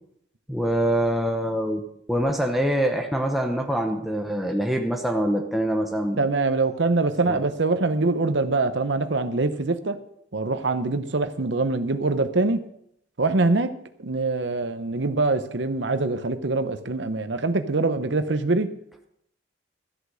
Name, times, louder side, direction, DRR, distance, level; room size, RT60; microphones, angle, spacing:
voice 1, 0.5-1.8 2.1-6.3 7.2-7.4, right 1 dB, ahead, 2 dB, 0.8 m, -24 dB
voice 2, 6.2-10.0 10.3-12.6 13.2-13.7 14.0-18.7, right 3 dB, 70° right, 10 dB, 0.9 m, -24 dB
13.5 x 8.2 x 6.3 m, 0.73 s
head